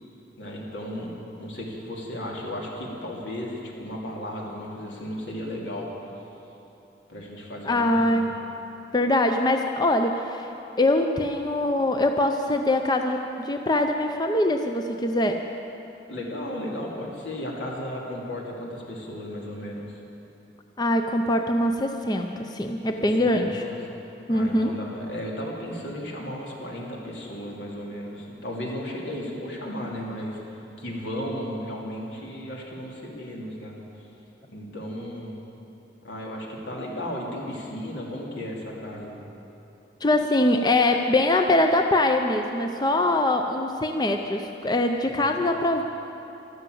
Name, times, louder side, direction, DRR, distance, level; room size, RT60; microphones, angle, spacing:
voice 1, 0.4-5.9 7.1-8.0 16.1-20.0 23.2-23.3 23.6-23.8 24.3-33.8 34.5-35.4 36.0-39.2 45.2-45.4, equal, 80° left, -2 dB, 2.8 m, -35 dB
voice 2, 7.7-8.3 8.9-15.4 20.8-23.6 24.3-24.7 40.0-45.8, left 1 dB, 25° left, 5 dB, 0.5 m, -23 dB
13.5 x 12.5 x 7.8 m, 2.9 s
head